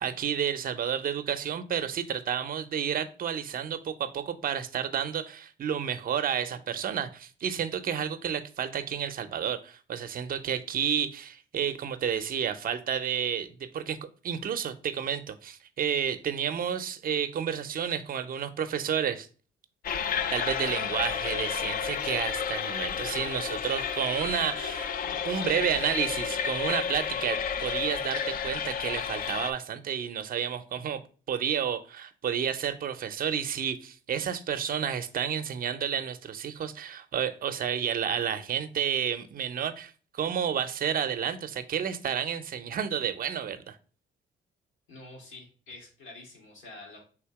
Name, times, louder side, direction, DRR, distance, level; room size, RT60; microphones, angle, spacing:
voice 1, 0.0-14.0 14.2-19.3 20.3-31.0 31.3-43.8, right 8 dB, 45° right, 0.5 m, -31 dB
sound 1, 19.8-29.5, left 7 dB, 45° left, 0.4 m, -31 dB
voice 2, 44.9-47.0, left 2 dB, 85° left, 1.8 m, -47 dB
3.5 x 2.8 x 4.5 m
cardioid pair, 90°, 20 cm